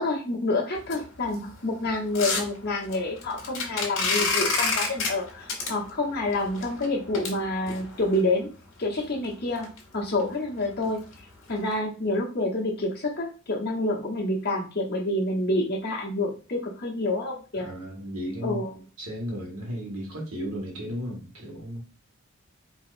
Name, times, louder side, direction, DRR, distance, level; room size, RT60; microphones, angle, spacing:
voice 1, 0.0-8.5 8.8-11.0 11.5-17.7 18.4-18.7, left 2 dB, 45° left, -3 dB, 1.1 m, -28 dB
sound 1, 0.8-8.2 8.8-8.9 9.2-9.3 9.6-9.8 10.1-10.2 10.6-10.9 11.1-11.2 11.7-11.8, left 4 dB, 65° left, 1.4 m, -30 dB
voice 2, 17.6-18.6 19.0-21.8, equal, 90° right, -1 dB, 1.6 m, -34 dB
4.4 x 2.8 x 2.6 m, 0.35 s
head